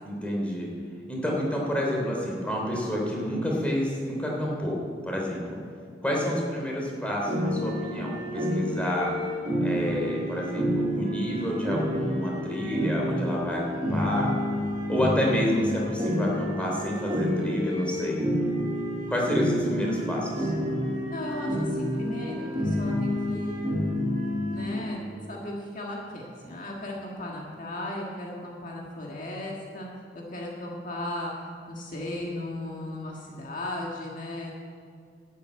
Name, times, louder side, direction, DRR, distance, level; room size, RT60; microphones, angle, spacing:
voice 1, 0.0-0.7 1.1-4.8 5.0-5.4 6.0-9.1 9.6-14.3 14.9-18.2 19.1-20.5, equal, 5° left, -2 dB, 3.2 m, -29 dB
sound 1, 7.3-24.7, equal, 25° right, 4.4 m, -29 dB
voice 2, 21.1-23.6 24.5-29.9 30.1-34.5, left 1 dB, 50° left, -2 dB, 1.7 m, -36 dB
12.5 x 8.3 x 8.9 m, 2.2 s
head